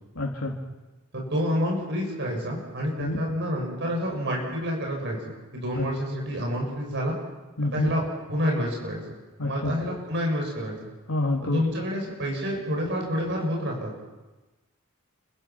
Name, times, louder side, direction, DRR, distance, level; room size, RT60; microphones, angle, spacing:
voice 1, 0.1-0.6 3.0-3.2 5.7-5.8 7.6-7.9 9.4-9.9 11.1-11.6, left 2 dB, 90° left, -2 dB, 3.2 m, -27 dB
voice 2, 1.1-5.2 5.5-7.1 7.7-8.0 8.3-9.0 9.4-10.8 11.5-13.9, equal, 55° right, 0 dB, 6.9 m, -28 dB
29.5 x 26.0 x 6.1 m, 1.2 s
head